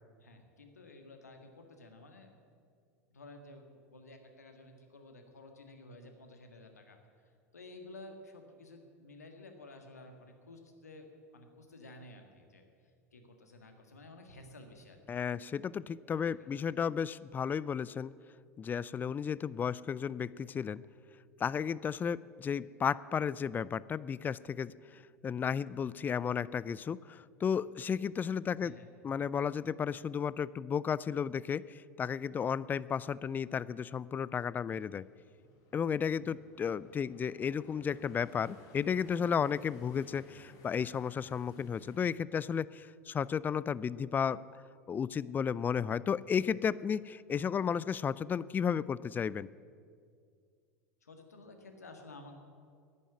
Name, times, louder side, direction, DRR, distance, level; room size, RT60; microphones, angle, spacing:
voice 1, 0.2-2.4 3.1-7.0 7.2-11.1 11.3-12.6 13.1-15.2 16.2-16.8 28.5-28.9 36.2-36.3 51.0-52.3, left 2 dB, 80° left, 5 dB, 1.7 m, -53 dB
voice 2, 15.1-18.1 18.6-20.8 21.4-28.7 29.0-35.1 35.7-44.4 44.9-49.5, left 7 dB, 20° left, 20 dB, 0.4 m, -33 dB
sound 1, 33.7-42.1, left 3 dB, 45° left, 2.5 m, -59 dB
11.0 x 10.0 x 9.1 m, 2.2 s
figure-of-eight pair, 80°, 8 cm